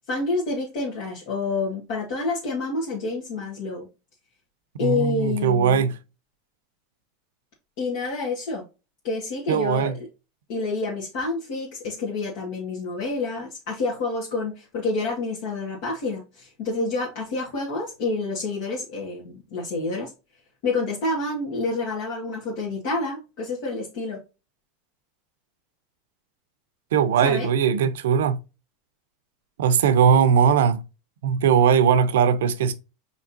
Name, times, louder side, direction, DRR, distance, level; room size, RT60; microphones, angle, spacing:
voice 1, 0.1-3.9 4.8-5.9 7.8-8.6 9.0-10.1 10.5-20.1 20.6-24.2 27.2-27.5, left 3 dB, 65° left, 1.7 m, -28 dB
voice 2, 4.8-6.0 9.5-10.0 26.9-28.4 29.6-30.8 31.2-32.7, right 7 dB, 80° right, 0.6 m, -19 dB
5.1 x 3.2 x 2.7 m
hypercardioid pair, 105°, 0 cm